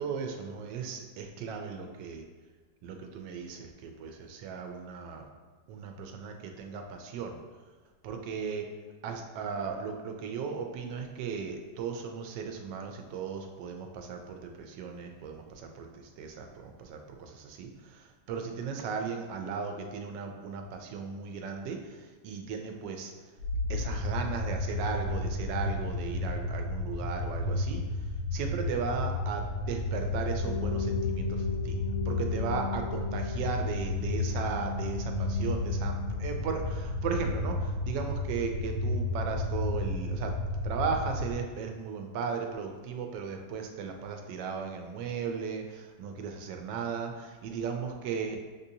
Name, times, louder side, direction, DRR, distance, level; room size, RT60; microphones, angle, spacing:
voice 1, 0.0-2.2 2.8-5.2 5.7-7.4 8.0-8.6 9.0-23.1 23.7-31.8 32.0-40.3 40.6-48.4, right 5 dB, 90° right, 4 dB, 1.3 m, -36 dB
sound 1, 23.4-41.3, left 2 dB, 70° left, 1.2 m, -32 dB
sound 2, 30.4-38.3, left 6 dB, 25° right, 1.3 m, -39 dB
6.5 x 2.6 x 2.7 m, 1.4 s
omnidirectional pair, 1.9 m